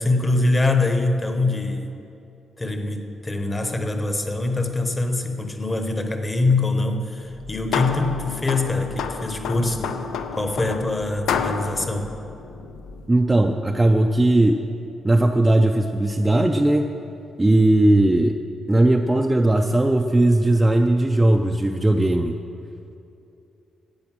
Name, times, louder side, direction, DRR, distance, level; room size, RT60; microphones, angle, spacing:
voice 1, 0.0-1.9 2.6-9.9 10.4-12.1, left 2 dB, 15° left, 6 dB, 0.8 m, -23 dB
sound 1, 7.3-13.1, left 6 dB, 90° left, 0.6 m, -30 dB
voice 2, 13.1-14.6 15.0-16.9 17.4-18.3 18.7-22.3, right 1 dB, 10° right, 3 dB, 0.4 m, -18 dB
10.5 x 8.7 x 7.4 m, 2.7 s
cardioid pair, 175°, 0 cm